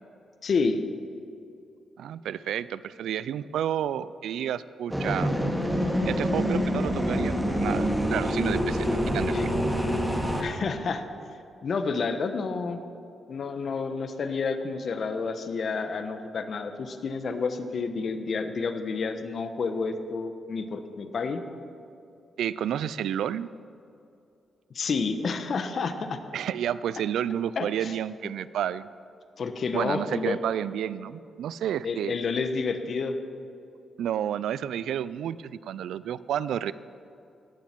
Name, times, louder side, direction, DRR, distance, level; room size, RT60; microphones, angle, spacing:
voice 1, 0.4-0.8 9.3-9.4 10.4-11.1 11.6-12.8 13.3-21.4 24.7-26.2 27.6-27.9 29.4-30.4 31.8-33.2, left 4 dB, 60° left, 8 dB, 1.1 m, -29 dB
voice 2, 2.0-5.3 6.1-9.4 22.4-23.5 26.3-28.9 29.7-32.1 34.0-36.7, right 10 dB, 85° right, 17 dB, 0.3 m, -30 dB
sound 1, 4.9-10.4, equal, 5° right, 2.3 m, -26 dB
18.0 x 7.3 x 6.0 m, 2.5 s
cardioid pair, 60°, 0 cm